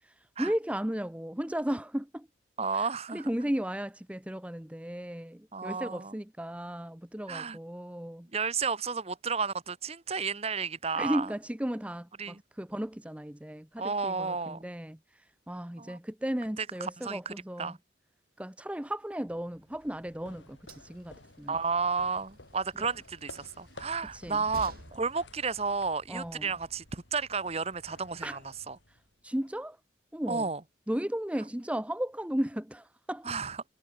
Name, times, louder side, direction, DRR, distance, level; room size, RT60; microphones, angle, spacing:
voice 1, 0.4-2.3 2.7-8.3 11.0-15.0 15.5-17.8 18.4-21.5 24.1-24.4 26.1-26.5 28.2-28.4 29.2-29.8 30.1-30.5 30.9-33.3, equal, 5° right, 0.7 m, -35 dB
voice 2, 2.6-3.3 5.5-6.2 7.3-7.6 8.3-11.3 12.2-12.4 13.8-14.6 15.8-16.0 16.6-17.8 21.5-28.4 28.7-28.8 30.3-30.6 33.2-33.6, right 5 dB, 30° right, 1.0 m, -32 dB
Train, 19.3-27.0, right 1 dB, 50° right, 4.2 m, -54 dB
sound 1, 19.6-29.3, left 2 dB, 70° left, 5.4 m, -53 dB
head